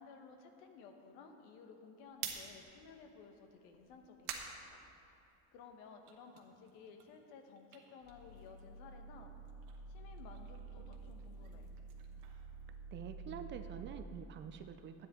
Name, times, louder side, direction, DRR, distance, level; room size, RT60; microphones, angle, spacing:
voice 1, 0.0-4.8 5.5-9.3 9.9-11.7, left 5 dB, 80° left, 5 dB, 1.2 m, -56 dB
sound 1, 2.0-5.5 5.9-8.9 9.2-13.3, right 8 dB, 65° right, 1.3 m, -51 dB
sound 2, 8.0-14.0, right 4 dB, 40° left, 0.5 m, -50 dB
voice 2, 12.9-15.1, right 7 dB, 35° right, 8 dB, 0.4 m, -47 dB
12.5 x 9.4 x 3.6 m, 2.8 s
cardioid pair, 150°, 36 cm